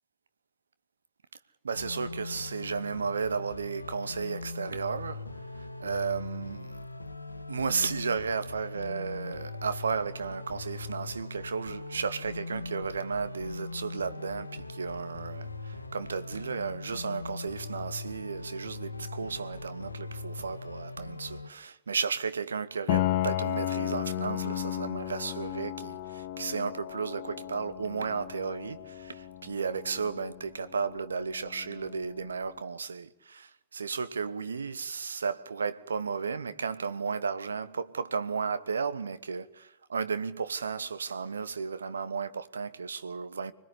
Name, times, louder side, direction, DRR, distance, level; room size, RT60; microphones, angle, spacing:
voice 1, 1.6-5.2 5.8-6.7 7.5-43.5, right 5 dB, 70° right, 1.2 m, -34 dB
sound 1, 1.7-21.5, left 3 dB, 80° left, 1.3 m, -41 dB
Piano, 22.9-32.5, left 13 dB, 50° left, 1.3 m, -34 dB
25.5 x 21.0 x 9.9 m
figure-of-eight pair, 90°, 0 cm